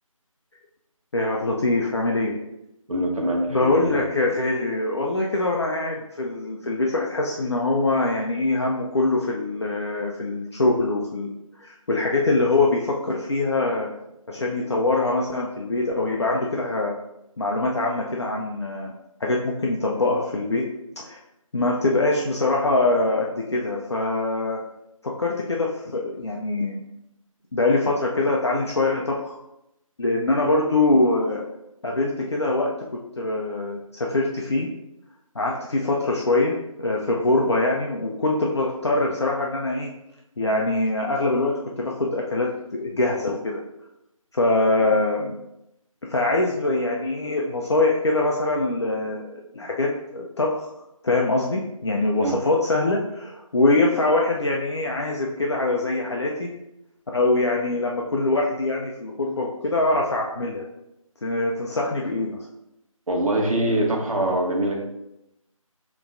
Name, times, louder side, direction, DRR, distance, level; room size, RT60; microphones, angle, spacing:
voice 1, 1.1-2.4 3.5-11.3 11.6-13.9 14.3-16.9 17.4-18.9 19.2-20.7 21.0-21.2 21.5-24.6 25.0-26.8 27.5-29.4 30.0-31.5 31.8-32.7 33.2-34.7 35.3-39.9 40.4-43.6 44.3-45.3 46.1-50.7 51.0-56.5 57.1-60.7 61.2-62.5, left 2 dB, 50° left, -2 dB, 0.6 m, -23 dB
voice 2, 2.9-4.0 44.8-44.9 52.2-52.4 63.1-64.8, right 1 dB, 75° right, -1 dB, 1.3 m, -24 dB
6.6 x 3.0 x 2.6 m, 0.85 s
figure-of-eight pair, 165°, 18 cm